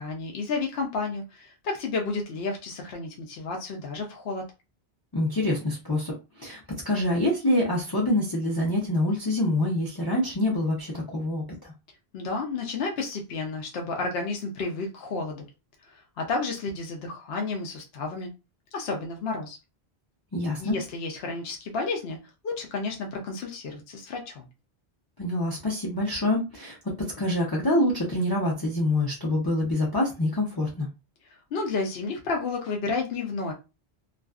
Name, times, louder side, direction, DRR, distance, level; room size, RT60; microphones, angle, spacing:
voice 1, 0.0-4.4 12.1-15.5 16.2-18.3 18.7-19.6 20.6-22.2 22.4-24.5 31.5-33.5, left 3 dB, 70° left, 2 dB, 0.8 m, -31 dB
voice 2, 5.1-11.7 20.3-20.8 25.2-30.9, left 1 dB, 25° left, -2 dB, 0.6 m, -26 dB
2.5 x 2.3 x 2.3 m, 0.27 s
omnidirectional pair, 1.1 m